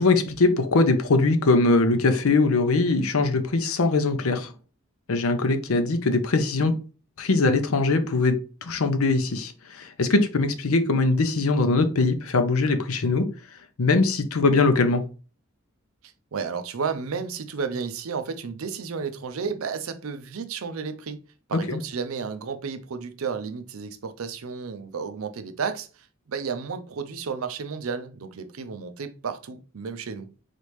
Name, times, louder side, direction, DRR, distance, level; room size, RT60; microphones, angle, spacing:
voice 1, 0.0-4.5 5.1-6.7 7.2-13.2 13.8-15.0 21.7-21.8, left 3 dB, 85° left, 0.7 m, -21 dB
voice 2, 16.3-21.2 21.5-30.3, right 5 dB, 75° right, 0.5 m, -32 dB
4.0 x 3.3 x 3.1 m
head